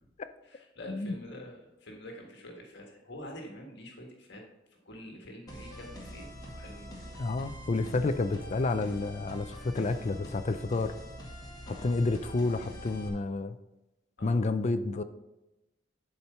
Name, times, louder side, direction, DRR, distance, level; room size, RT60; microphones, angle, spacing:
voice 1, 0.4-4.4 4.7-6.9 11.6-11.9 14.2-14.4, left 1 dB, 65° left, 1 dB, 1.6 m, -46 dB
sound 1, 5.5-13.1, equal, 20° left, 1.9 m, -45 dB
voice 2, 7.2-10.9 11.7-13.6 14.2-15.0, left 3 dB, 35° left, 9 dB, 0.4 m, -30 dB
11.5 x 4.5 x 5.5 m, 0.98 s
head